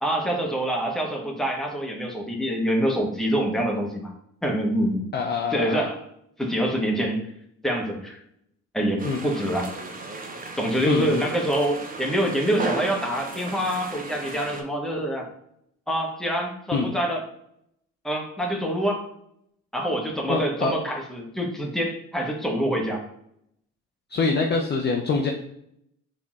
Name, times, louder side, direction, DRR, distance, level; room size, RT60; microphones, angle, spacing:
voice 1, 0.0-4.1 4.4-5.1 5.5-6.0 6.4-7.3 7.6-8.2 8.7-9.7 10.6-15.3 15.9-17.2 18.0-19.1 19.7-23.0, equal, ahead, 0 dB, 0.9 m, -26 dB
voice 2, 5.1-5.9 9.0-9.2 10.9-11.3 16.7-16.9 20.3-20.7 24.1-25.3, left 4 dB, 25° left, 2 dB, 0.4 m, -25 dB
sound 1, 9.0-14.6, right 3 dB, 20° right, 0.5 m, -35 dB
3.7 x 2.9 x 2.4 m, 0.73 s
hypercardioid pair, 50°, 40 cm